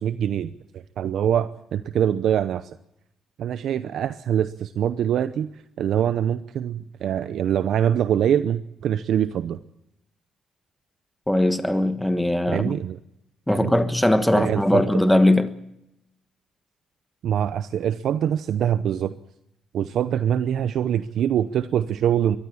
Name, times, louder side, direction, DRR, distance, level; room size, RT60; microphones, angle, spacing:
voice 1, 0.0-2.7 3.4-9.6 12.5-13.0 13.5-13.8 14.3-14.8 17.2-19.1 19.7-22.4, right 9 dB, 70° right, 0.8 m, -24 dB
voice 2, 11.3-12.7 13.5-15.5, left 1 dB, 5° left, 1.3 m, -20 dB
22.0 x 14.0 x 8.5 m
cardioid pair, 90°, 0 cm